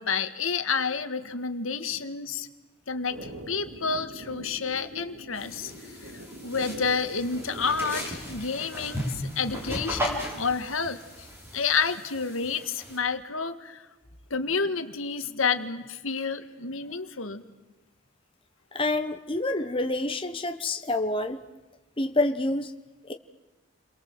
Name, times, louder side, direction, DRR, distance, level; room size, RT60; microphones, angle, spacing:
voice 1, 0.0-2.5 2.9-6.1 6.4-11.3 11.5-13.9 14.3-17.4, left 5 dB, 80° left, 9 dB, 1.8 m, -30 dB
sound 1, 3.1-8.2, right 1 dB, 75° right, 4.0 m, -42 dB
sound 2, 5.3-13.0, equal, 10° right, 5.8 m, -36 dB
voice 2, 18.7-21.4 22.0-22.7 23.1-23.2, left 2 dB, 25° left, 6 dB, 1.2 m, -27 dB
30.0 x 23.0 x 7.9 m, 1.2 s
head